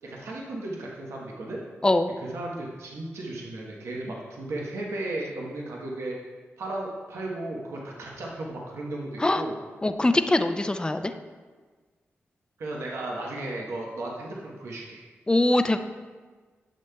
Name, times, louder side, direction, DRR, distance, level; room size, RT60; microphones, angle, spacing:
voice 1, 0.0-1.6 2.3-6.2 6.6-9.6 12.6-15.0, right 2 dB, 85° right, -3 dB, 1.1 m, -35 dB
voice 2, 9.8-11.1 15.3-15.8, left 2 dB, 20° left, 9 dB, 0.5 m, -22 dB
10.5 x 6.6 x 2.3 m, 1.4 s
cardioid pair, 65°, 5 cm